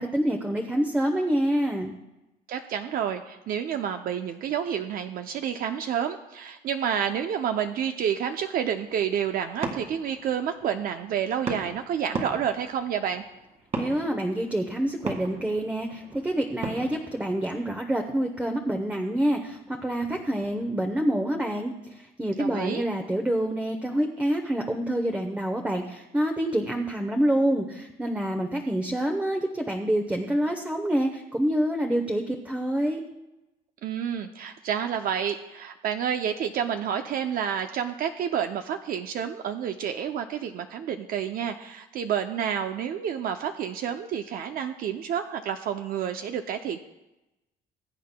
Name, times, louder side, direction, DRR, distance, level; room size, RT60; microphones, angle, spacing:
voice 1, 0.0-2.0 13.7-33.0, right 1 dB, 10° right, 3 dB, 0.8 m, -27 dB
voice 2, 2.5-13.2 22.4-22.8 33.8-46.8, right 8 dB, 60° right, 7 dB, 0.6 m, -29 dB
sound 1, 8.9-21.0, right 3 dB, 40° right, 2.0 m, -40 dB
21.0 x 8.4 x 2.2 m, 0.99 s
cardioid pair, 110°, 17 cm